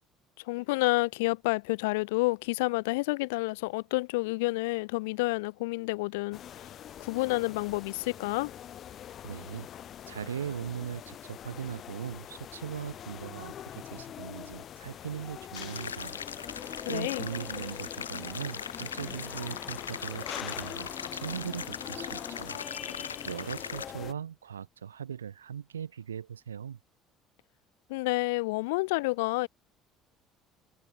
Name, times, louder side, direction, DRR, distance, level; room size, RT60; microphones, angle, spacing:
voice 1, 0.4-6.7 7.0-8.5 16.9-17.3 27.9-29.5, left 24 dB, 70° left, 1.0 m, -29 dB
sound 1, 6.3-24.1, left 10 dB, 50° left, 7.5 m, -43 dB
voice 2, 9.2-9.7 10.1-16.2 16.9-22.6 22.9-26.8, right 8 dB, 85° right, 2.5 m, -39 dB
sound 2, 15.6-23.9, left 6 dB, 85° left, 2.0 m, -40 dB
figure-of-eight pair, 60°, 0 cm